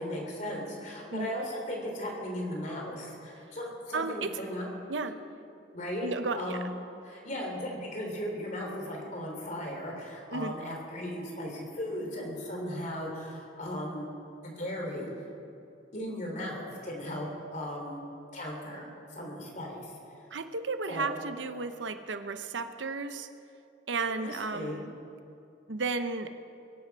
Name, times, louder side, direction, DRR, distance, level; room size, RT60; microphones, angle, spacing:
voice 1, 0.0-4.7 5.7-6.7 7.0-14.1 14.4-15.1 15.9-18.0 18.3-19.9 20.9-21.1 24.1-24.8, equal, 40° left, 0 dB, 3.3 m, -37 dB
voice 2, 3.9-4.3 4.9-5.1 6.0-6.6 10.3-10.5 20.3-23.3 23.9-24.9 25.7-26.3, right 3 dB, 75° right, 9 dB, 0.8 m, -33 dB
22.5 x 11.5 x 4.7 m, 2.7 s
head